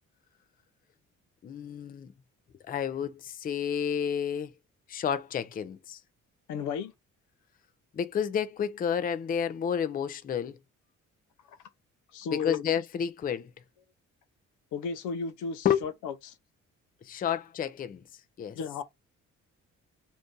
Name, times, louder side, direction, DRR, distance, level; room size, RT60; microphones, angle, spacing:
voice 1, 1.4-2.1 2.7-4.5 4.9-6.0 7.9-10.6 12.3-13.5 15.6-15.9 17.0-18.0 18.4-18.6, left 8 dB, 30° left, 0.4 m, -30 dB
voice 2, 6.5-6.9 11.4-11.6 12.1-12.7 14.7-16.4 18.6-18.8, left 5 dB, 85° left, 0.6 m, -34 dB
2.6 x 2.6 x 3.6 m
cardioid pair, 90°, 30 cm